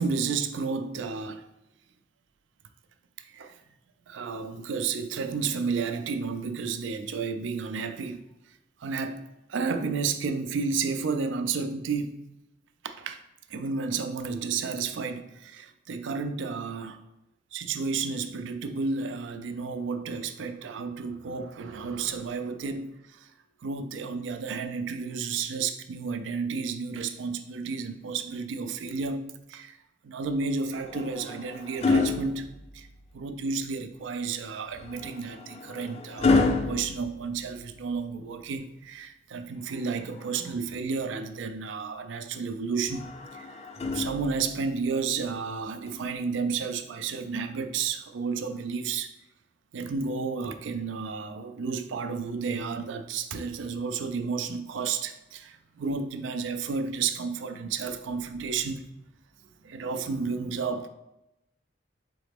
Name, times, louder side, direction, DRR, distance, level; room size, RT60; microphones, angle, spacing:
voice 1, 0.0-1.5 3.2-3.6 4.1-12.2 12.8-13.2 13.5-17.0 17.5-23.3 23.6-29.8 30.0-32.9 33.1-43.6 43.9-49.1 49.7-58.9 59.6-60.9, right 5 dB, 70° right, 8 dB, 0.4 m, -32 dB
sound 1, 30.7-33.1 34.7-37.9 39.7-40.8 42.8-44.7 45.9-46.1, left 3 dB, 35° left, 0.4 m, -30 dB
4.0 x 3.8 x 3.5 m, 0.90 s
head